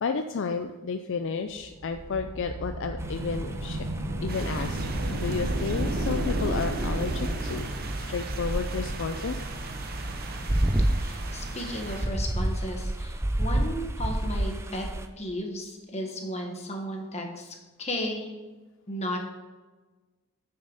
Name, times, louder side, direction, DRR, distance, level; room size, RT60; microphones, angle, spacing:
voice 1, 0.0-3.8 4.2-7.7 7.9-9.4, left 5 dB, 55° left, 7 dB, 0.4 m, -32 dB
sound 1, 1.6-8.1, right 1 dB, 85° right, 1.2 m, -32 dB
sound 2, 3.0-5.4 5.9-15.1, right 1 dB, 10° right, 0.4 m, -30 dB
sound 3, 4.3-12.1, right 2 dB, 45° right, 0.9 m, -35 dB
voice 2, 11.0-14.8 15.2-18.3 18.9-19.2, equal, 30° left, 1 dB, 1.4 m, -34 dB
9.1 x 6.7 x 4.0 m, 1.3 s
head